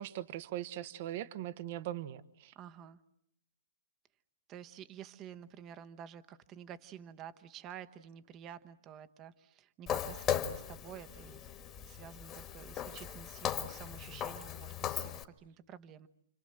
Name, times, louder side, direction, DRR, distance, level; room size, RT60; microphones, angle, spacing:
voice 1, 0.0-2.5, right 13 dB, 50° right, 14 dB, 1.1 m, -40 dB
voice 2, 2.5-3.0 4.5-11.5 11.8-16.1, right 9 dB, 25° right, 11 dB, 1.1 m, -50 dB
Walk footsteps, 9.9-15.2, left 9 dB, 25° left, 1.7 m, -38 dB
29.5 x 25.5 x 7.9 m, 0.71 s
hypercardioid pair, 150°, 0 cm